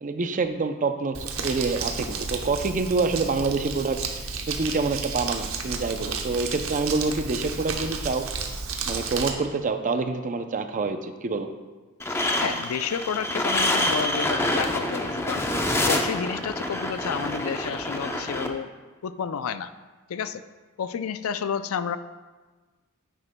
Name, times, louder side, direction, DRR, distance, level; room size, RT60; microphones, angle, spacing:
voice 1, 0.0-4.0 4.5-8.3 8.9-11.5, right 3 dB, 40° right, 8 dB, 0.5 m, -27 dB
Crumpling crinkling, 1.1-9.3, right 5 dB, 70° right, 0.9 m, -32 dB
sound 1, 12.0-18.5, left 1 dB, 10° left, 0.6 m, -26 dB
voice 2, 12.4-15.5 15.9-18.7 19.0-19.7 20.1-20.4 20.8-22.0, left 7 dB, 75° left, 13 dB, 0.4 m, -30 dB
9.8 x 9.2 x 2.2 m, 1.3 s
head